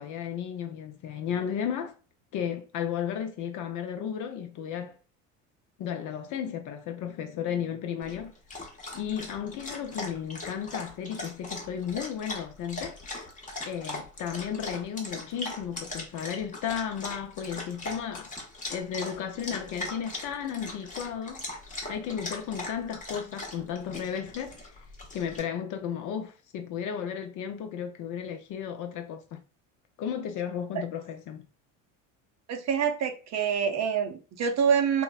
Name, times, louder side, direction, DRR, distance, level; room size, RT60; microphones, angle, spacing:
voice 1, 0.0-1.9 2.3-5.0 5.8-8.3 8.9-13.0 13.6-18.3 18.7-21.4 21.9-24.6 25.1-29.4 30.0-31.5, left 8 dB, 50° left, 0.6 m, -34 dB
Dog, 8.0-25.4, left 2 dB, 20° left, 0.9 m, -40 dB
voice 2, 32.5-35.0, right 7 dB, 40° right, 0.6 m, -26 dB
3.0 x 2.1 x 2.3 m
supercardioid pair, 80°, 40 cm